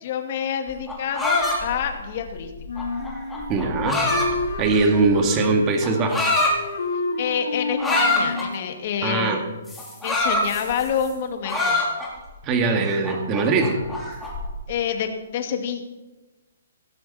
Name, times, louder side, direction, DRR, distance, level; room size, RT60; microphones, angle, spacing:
voice 1, 0.0-2.5 7.2-9.4 10.0-11.9 14.7-15.8, left 8 dB, 40° left, 5 dB, 2.3 m, -27 dB
sound 1, 0.7-5.1 5.8-6.5 7.8-8.5 9.7-11.1 11.4-12.3 12.7-14.4, left 2 dB, 5° left, 3.4 m, -25 dB
Wind instrument woodwind instrument, 2.7-4.8 5.1-6.2 6.4-8.6, left 3 dB, 70° left, 3.4 m, -30 dB
voice 2, 3.5-4.0 4.6-6.4 9.0-9.4 12.4-13.8, right 3 dB, 20° right, 4 dB, 2.2 m, -21 dB
17.5 x 15.5 x 4.3 m, 1.2 s
hypercardioid pair, 165°, 0 cm